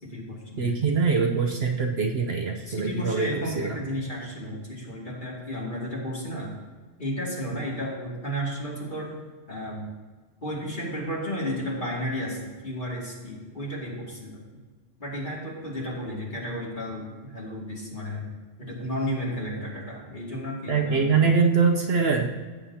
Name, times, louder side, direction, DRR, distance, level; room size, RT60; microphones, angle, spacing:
voice 1, 0.0-0.8 2.7-6.5 7.0-9.1 9.5-9.8 10.4-14.4 15.0-18.2 18.6-21.3, equal, 40° left, -4 dB, 2.6 m, -33 dB
voice 2, 0.6-3.3 3.6-3.8 20.7-22.3, right 5 dB, 55° right, 2 dB, 1.0 m, -23 dB
15.0 x 8.2 x 2.8 m, 1.4 s
omnidirectional pair, 1.3 m